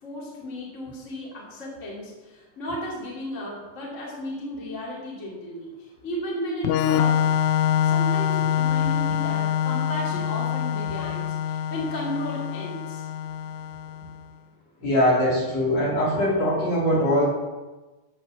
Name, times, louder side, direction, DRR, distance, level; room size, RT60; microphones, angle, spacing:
voice 1, 0.0-7.3 7.8-13.1, equal, 25° left, -4 dB, 2.8 m, -34 dB
Organ, 6.6-14.2, left 9 dB, 80° left, 2.0 m, -25 dB
voice 2, 14.8-17.3, equal, 55° left, -6 dB, 4.9 m, -22 dB
14.0 x 5.9 x 7.0 m, 1.2 s
omnidirectional pair, 3.6 m